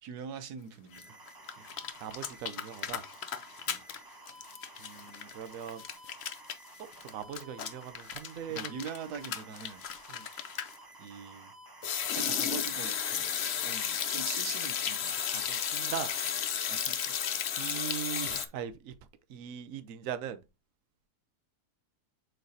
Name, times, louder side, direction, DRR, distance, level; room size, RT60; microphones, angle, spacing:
voice 1, 0.0-1.2 1.6-1.7 3.7-3.8 8.5-9.8 11.0-11.5 12.1-13.3 13.6-15.2 16.7-17.1 18.4-18.5, right 6 dB, 80° right, 1.3 m, -43 dB
sound 1, 0.9-15.9, right 2 dB, 20° right, 0.6 m, -53 dB
sound 2, 1.0-1.1 1.3-4.0 4.3-10.7 11.8-18.5, left 8 dB, 55° left, 0.8 m, -34 dB
voice 2, 2.0-3.0 4.8-5.8 6.8-8.7 10.1-10.3 15.5-16.1 17.6-18.9 19.3-20.4, right 9 dB, 65° right, 1.1 m, -40 dB
7.8 x 4.6 x 2.7 m
omnidirectional pair, 1.7 m